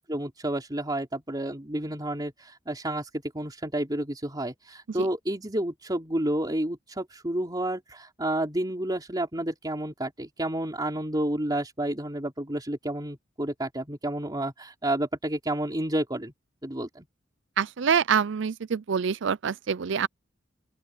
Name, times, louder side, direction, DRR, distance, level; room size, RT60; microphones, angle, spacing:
voice 1, 0.0-3.1 3.3-16.3 16.6-17.1, right 1 dB, 20° right, 3.6 m, -30 dB
voice 2, 17.6-20.1, right 7 dB, 65° right, 0.5 m, -26 dB
open air
head